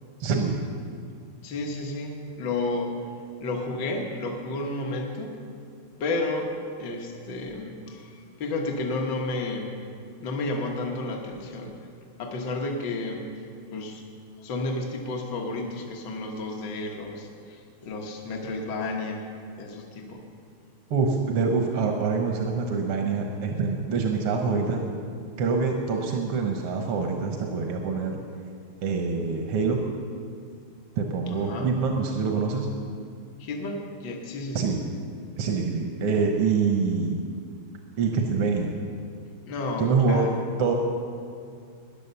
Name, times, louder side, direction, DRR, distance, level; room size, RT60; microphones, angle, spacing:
voice 1, 0.2-0.6 20.9-24.8 25.4-28.2 28.8-29.8 31.0-32.7 34.6-34.8 35.4-37.2 38.0-38.7 39.8-40.3 40.6-40.7, right 5 dB, 85° right, 2 dB, 1.9 m, -25 dB
voice 2, 1.4-2.9 3.4-5.4 6.0-6.5 6.8-9.7 10.2-11.8 12.2-13.3 13.7-14.0 14.4-19.2 19.6-20.2 31.3-31.8 33.4-34.7 39.4-40.3, left 2 dB, 60° left, 1 dB, 1.8 m, -31 dB
14.0 x 10.5 x 6.8 m, 2.3 s
omnidirectional pair, 2.4 m